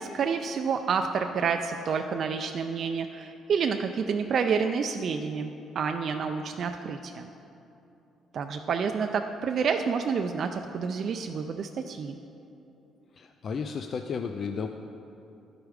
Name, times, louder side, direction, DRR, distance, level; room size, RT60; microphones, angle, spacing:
voice 1, 0.0-7.3 8.3-12.2, right 6 dB, 50° right, 5 dB, 0.3 m, -29 dB
voice 2, 13.1-14.7, left 5 dB, 45° left, 6 dB, 0.3 m, -33 dB
11.5 x 4.9 x 4.7 m, 2.8 s
cardioid pair, 105°, 0 cm